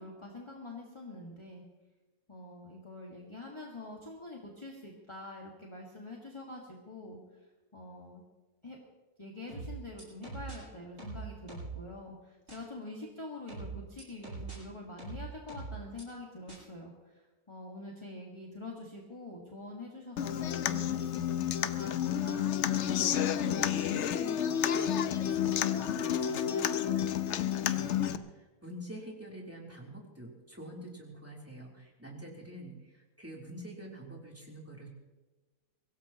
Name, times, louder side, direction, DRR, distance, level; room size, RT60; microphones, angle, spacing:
voice 1, 0.0-1.6 2.3-7.2 7.7-8.2 8.6-8.8 9.2-22.5, left 2 dB, 20° left, -3 dB, 1.8 m, -45 dB
sound 1, 9.5-10.6 11.0-11.8 12.5-12.6 13.5-14.6 15.0-16.0 16.5-16.6, right 4 dB, 45° right, 7.8 m, -41 dB
Human voice / Acoustic guitar, 20.2-28.2, left 9 dB, 60° left, 0.9 m, -30 dB
voice 2, 22.7-34.9, right 1 dB, 10° right, -3 dB, 3.2 m, -46 dB
24.0 x 17.5 x 3.0 m, 1.2 s
omnidirectional pair, 1.5 m